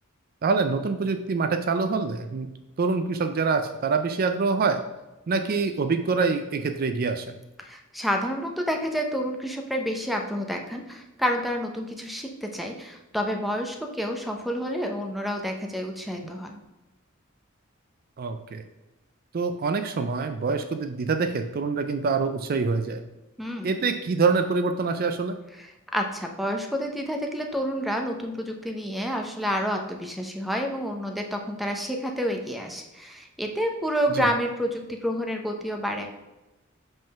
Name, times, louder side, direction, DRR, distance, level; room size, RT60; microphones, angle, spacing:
voice 1, 0.4-2.5 2.8-4.8 5.3-7.4 18.2-18.6 19.3-23.0 23.6-25.3 34.1-34.3, right 4 dB, 45° right, 8 dB, 0.4 m, -25 dB
voice 2, 7.6-16.6 23.4-23.7 25.6-36.1, equal, ahead, 3 dB, 0.6 m, -29 dB
5.3 x 3.7 x 5.8 m, 1.0 s
head